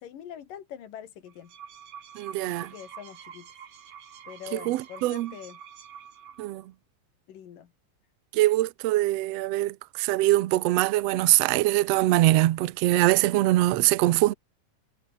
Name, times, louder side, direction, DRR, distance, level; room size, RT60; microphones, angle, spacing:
voice 1, 0.0-1.5 2.5-3.5 4.3-5.6 7.3-7.7, left 9 dB, 85° left, 3.8 m, -43 dB
sound 1, 1.3-6.6, right 8 dB, 55° right, 2.9 m, -46 dB
voice 2, 2.2-2.7 4.5-5.3 6.4-6.6 8.3-14.3, right 17 dB, 70° right, 1.6 m, -23 dB
omnidirectional pair, 3.8 m